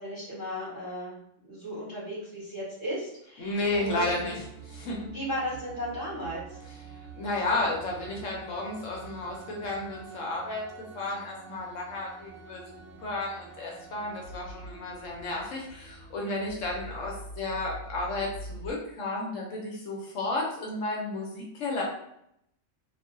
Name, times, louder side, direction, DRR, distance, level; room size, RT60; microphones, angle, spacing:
voice 1, 0.0-4.3 5.0-6.6, equal, 15° right, -11 dB, 1.4 m, -36 dB
voice 2, 3.4-4.4 4.7-5.1 7.1-10.7 10.9-12.6 13.0-21.8, left 2 dB, 75° left, -1 dB, 1.0 m, -32 dB
sound 1, 3.6-18.7, right 3 dB, 80° right, 1.0 m, -46 dB
2.7 x 2.5 x 2.5 m, 0.77 s
omnidirectional pair, 1.3 m